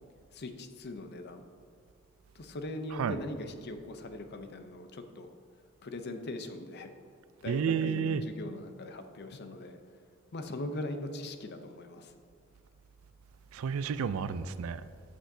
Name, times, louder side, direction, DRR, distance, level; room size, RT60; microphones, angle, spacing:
voice 1, 0.3-1.4 2.3-5.3 5.8-6.9 7.4-9.8 10.3-12.1, left 1 dB, 50° left, 7 dB, 0.6 m, -40 dB
voice 2, 2.9-3.2 7.4-8.3 13.5-14.9, right 6 dB, 85° right, 14 dB, 0.4 m, -31 dB
14.0 x 6.2 x 2.7 m, 2.3 s
head